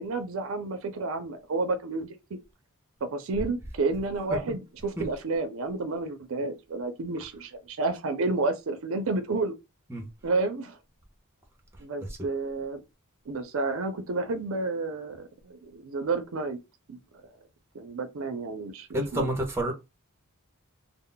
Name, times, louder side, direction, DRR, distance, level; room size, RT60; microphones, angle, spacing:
voice 1, 0.0-2.2 3.0-9.5 10.2-10.8 11.8-12.8 13.3-16.6 16.9-17.0 17.7-19.3, right 3 dB, 65° right, 0.5 m, -30 dB
voice 2, 18.9-19.7, right 1 dB, 10° right, 0.6 m, -28 dB
2.2 x 2.0 x 3.7 m
head